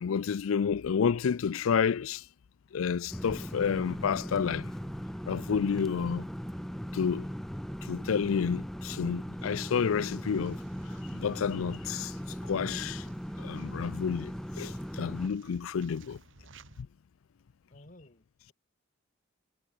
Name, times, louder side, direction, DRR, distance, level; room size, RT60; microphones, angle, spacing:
voice 1, 0.0-2.2 2.7-4.7 5.3-6.3 6.9-7.3 7.9-10.6 11.1-12.1 12.5-13.0 13.4-16.2, left 6 dB, 75° left, 0.4 m, -30 dB
sound 1, 3.1-15.3, equal, ahead, 0.9 m, -38 dB
sound 2, 9.4-16.8, right 3 dB, 65° right, 2.2 m, -58 dB
voice 2, 17.7-18.5, left 1 dB, 40° left, 3.5 m, -55 dB
head